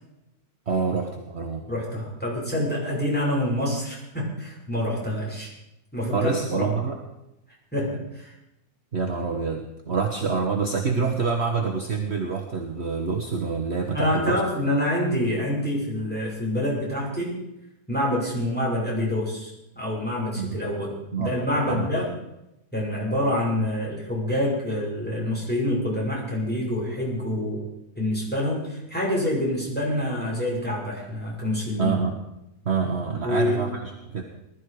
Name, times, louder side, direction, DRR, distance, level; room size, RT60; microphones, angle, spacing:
voice 1, 0.7-1.6 6.1-7.0 8.9-14.4 20.4-20.5 21.1-21.3 21.6-21.9 31.8-32.2 32.6-34.2, right 5 dB, 45° right, 3 dB, 1.5 m, -26 dB
voice 2, 1.7-5.5 5.9-6.7 7.7-8.3 13.9-17.4 17.9-20.9 21.2-22.1 22.7-27.6 28.0-32.0 33.1-33.6, left 1 dB, 5° left, -4 dB, 5.9 m, -26 dB
20.0 x 13.0 x 5.0 m, 0.88 s
omnidirectional pair, 1.6 m